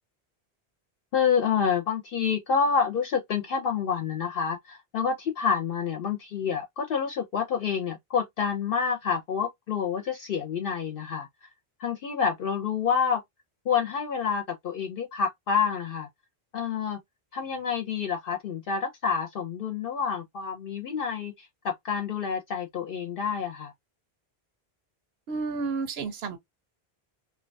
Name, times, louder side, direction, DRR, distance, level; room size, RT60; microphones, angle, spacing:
voice 1, 1.1-11.3 11.8-13.2 13.7-16.1 16.5-17.0 17.3-23.7, left 6 dB, 65° left, 0.7 m, -28 dB
voice 2, 25.3-26.4, right 4 dB, 75° right, 0.9 m, -31 dB
2.5 x 2.2 x 2.5 m
omnidirectional pair, 1.1 m